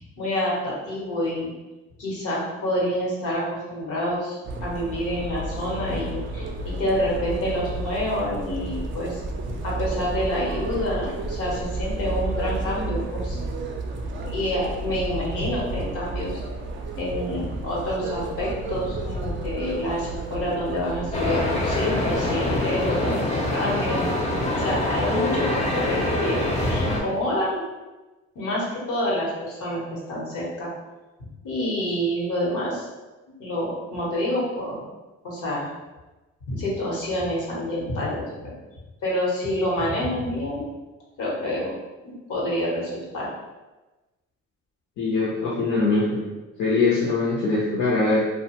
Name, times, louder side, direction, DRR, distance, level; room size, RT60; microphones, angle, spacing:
voice 1, 0.2-1.5 2.0-3.4 3.7-9.2 9.5-13.4 14.2-16.4 17.0-24.0 24.6-27.6 28.3-30.7 31.4-32.8 33.4-34.8 35.2-35.7 36.5-38.5 39.0-40.6 41.2-41.7 42.0-43.3, left 1 dB, 90° left, -5 dB, 1.0 m, -27 dB
sound 1, 4.4-22.7, right 2 dB, 40° right, 0.4 m, -32 dB
sound 2, 21.1-27.0, left 1 dB, 20° left, 0.5 m, -24 dB
voice 2, 45.0-46.2 46.6-48.2, left 3 dB, 75° left, -6 dB, 0.7 m, -22 dB
2.5 x 2.2 x 2.9 m, 1.1 s
cardioid pair, 90°, 30 cm